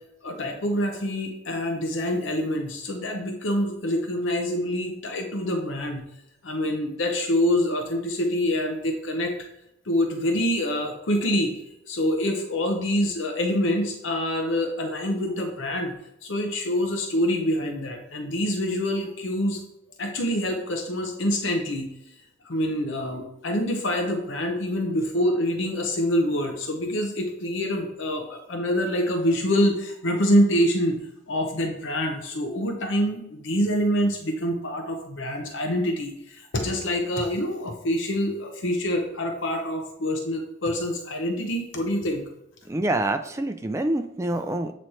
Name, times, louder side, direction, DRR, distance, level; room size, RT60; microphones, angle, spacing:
voice 1, 0.2-6.0 6.4-9.3 9.9-11.6 11.9-15.9 16.2-19.6 20.0-21.9 22.4-31.0 31.3-42.2, equal, 70° left, 3 dB, 0.7 m, -26 dB
voice 2, 42.7-44.7, right 1 dB, 15° right, 8 dB, 0.3 m, -26 dB
7.6 x 3.1 x 4.2 m, 0.84 s
head